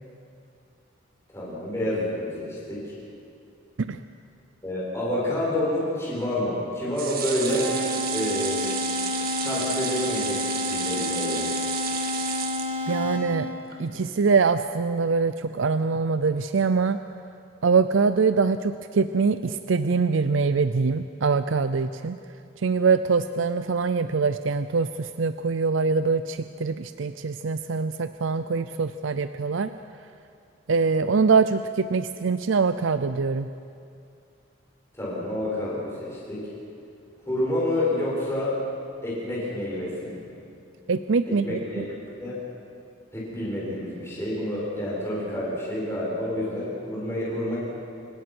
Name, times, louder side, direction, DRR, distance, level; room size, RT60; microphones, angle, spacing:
voice 1, 1.3-2.8 4.6-7.7 8.1-8.7 9.4-11.5 35.0-36.4 37.2-38.5 39.0-40.2 41.3-41.8 42.2-42.4 43.1-47.6, left 1 dB, 15° left, -7 dB, 7.3 m, -28 dB
sound 1, 7.0-13.3 13.7-13.8 14.1-14.2, right 7 dB, 45° right, 1.8 m, -32 dB
sound 2, 7.5-13.5, left 2 dB, 30° right, 2.8 m, -30 dB
voice 2, 12.9-13.5 13.8-17.0 17.6-22.2 22.6-29.7 30.7-33.5 40.9-41.8, right 4 dB, 70° right, 11 dB, 0.5 m, -23 dB
29.0 x 17.0 x 6.2 m, 2.4 s
head